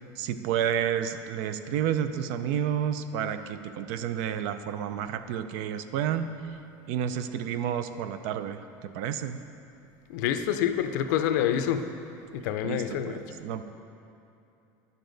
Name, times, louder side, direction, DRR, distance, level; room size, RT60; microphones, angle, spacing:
voice 1, 0.2-6.3 6.9-9.4 12.6-13.6, right 9 dB, 60° right, 11 dB, 0.4 m, -30 dB
voice 2, 10.1-11.8 12.3-13.2, left 10 dB, 85° left, 8 dB, 0.5 m, -27 dB
10.5 x 6.7 x 3.9 m, 2.7 s
cardioid pair, 175°, 10 cm